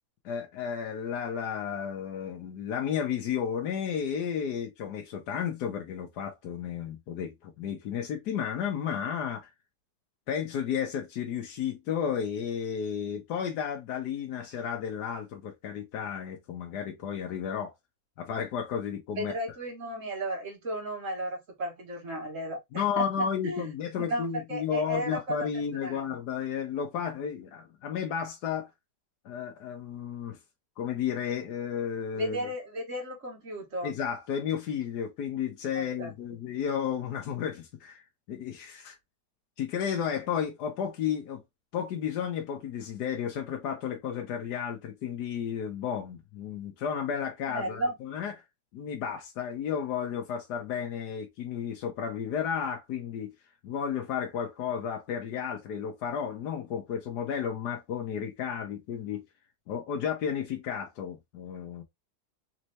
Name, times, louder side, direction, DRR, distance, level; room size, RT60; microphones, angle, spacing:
voice 1, 0.2-9.5 10.3-17.7 18.2-19.3 22.7-28.7 29.2-30.4 30.8-32.4 33.8-38.0 38.3-39.0 39.6-41.4 41.7-48.3 48.7-53.3 53.6-59.2 59.7-61.8, left 8 dB, 80° left, 1.4 m, -33 dB
voice 2, 19.2-23.7 24.0-25.5 25.8-26.2 32.1-33.9 35.8-36.1 47.5-48.0, right 1 dB, 50° right, 2.0 m, -34 dB
4.3 x 3.1 x 2.7 m
omnidirectional pair, 1.7 m